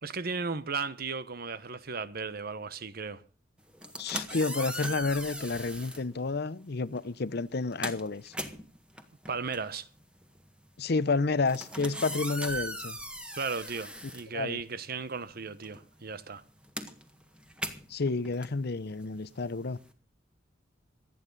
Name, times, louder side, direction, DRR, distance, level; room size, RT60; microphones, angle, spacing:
voice 1, 0.0-3.2 9.3-9.9 13.4-16.4, right 4 dB, 50° right, 1.1 m, -35 dB
sound 1, 3.7-6.1 6.9-7.1 7.5-15.0 15.3-19.9, right 1 dB, 5° right, 1.7 m, -39 dB
voice 2, 4.0-8.3 10.8-13.0 14.3-14.6 17.9-19.8, left 3 dB, 55° left, 0.7 m, -30 dB
27.0 x 9.5 x 4.0 m
head